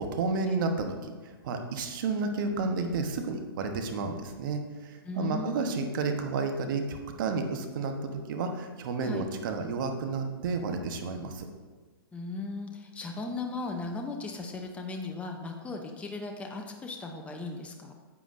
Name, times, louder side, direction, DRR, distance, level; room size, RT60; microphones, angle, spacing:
voice 1, 0.0-4.6 4.9-11.5, right 4 dB, 55° right, 5 dB, 1.1 m, -31 dB
voice 2, 5.0-5.9 9.0-9.3 12.1-17.9, left 3 dB, 10° left, 3 dB, 0.6 m, -37 dB
9.6 x 8.2 x 2.6 m, 1.4 s
hypercardioid pair, 120°, 13 cm